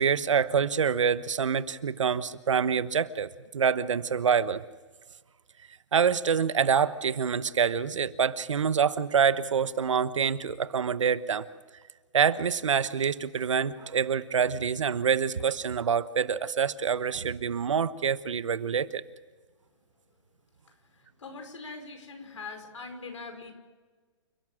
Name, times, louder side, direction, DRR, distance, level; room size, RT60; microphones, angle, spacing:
voice 1, 0.0-3.3 3.5-4.6 5.9-11.5 12.1-19.0, right 7 dB, 85° right, 14 dB, 1.1 m, -26 dB
voice 2, 21.0-23.5, left 4 dB, 85° left, 5 dB, 5.1 m, -42 dB
29.0 x 12.5 x 7.4 m, 1.4 s
hypercardioid pair, 150°, 15 cm